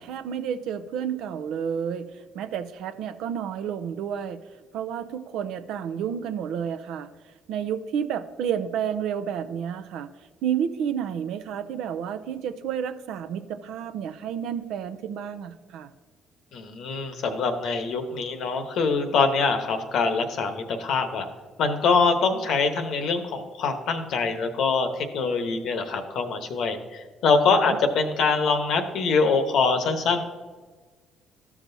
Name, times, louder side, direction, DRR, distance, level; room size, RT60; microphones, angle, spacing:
voice 1, 0.0-2.1 2.3-4.4 4.7-7.1 7.5-10.1 10.4-15.9 27.5-27.8, right 8 dB, 75° right, 11 dB, 0.5 m, -30 dB
voice 2, 16.5-21.3 21.6-30.2, left 4 dB, 70° left, 7 dB, 1.0 m, -24 dB
13.0 x 6.0 x 2.7 m, 1.4 s
supercardioid pair, 60°, 0 cm